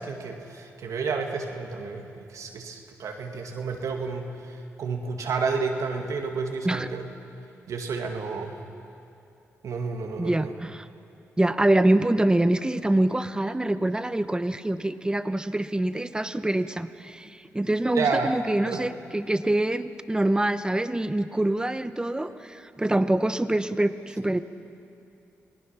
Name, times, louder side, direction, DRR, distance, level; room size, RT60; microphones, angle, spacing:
voice 1, 0.0-7.1 7.7-8.6 9.6-10.5 17.9-18.4 18.7-18.9, right 4 dB, 75° right, 3 dB, 2.2 m, -30 dB
voice 2, 10.2-10.8 11.4-24.4, right 1 dB, 15° right, 12 dB, 1.0 m, -25 dB
27.5 x 18.5 x 5.9 m, 2.7 s
cardioid pair, 55°, 6 cm